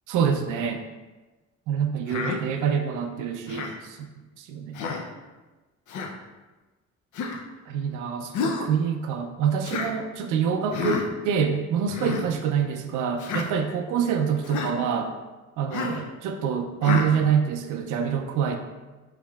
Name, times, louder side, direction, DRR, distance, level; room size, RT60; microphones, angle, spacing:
voice 1, 0.1-0.8 1.7-4.1 4.4-4.8 7.7-15.1 15.6-18.6, right 7 dB, 85° right, 5 dB, 0.4 m, -26 dB
Human voice, 2.1-2.4 3.5-3.8 4.7-5.1 5.9-6.1 7.1-7.4 8.3-8.7 9.6-9.9 10.7-11.0 11.9-12.2 13.2-13.5 14.4-14.7 15.7-16.0 16.8-17.1, left 5 dB, 75° left, 0.6 m, -29 dB
4.6 x 3.5 x 2.3 m, 1.2 s
cardioid pair, 90°, 30 cm